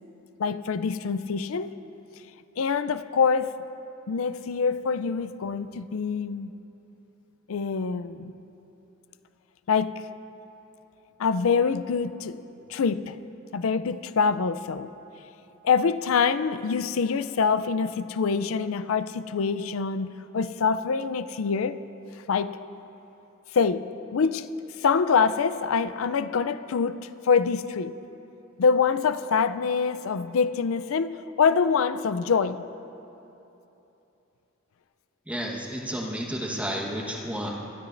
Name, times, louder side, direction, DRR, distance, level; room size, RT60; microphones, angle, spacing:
voice 1, 0.4-1.7 2.6-3.5 4.1-6.5 7.5-8.4 9.7-10.0 11.2-12.4 12.7-13.2 13.5-14.9 15.6-21.8 22.3-22.6 23.5-24.5 24.8-27.0 27.2-28.0 28.6-32.6, left 5 dB, 85° left, 13 dB, 0.4 m, -25 dB
voice 2, 35.3-37.5, equal, 5° right, -2 dB, 1.2 m, -31 dB
21.5 x 13.0 x 2.6 m, 3.0 s
head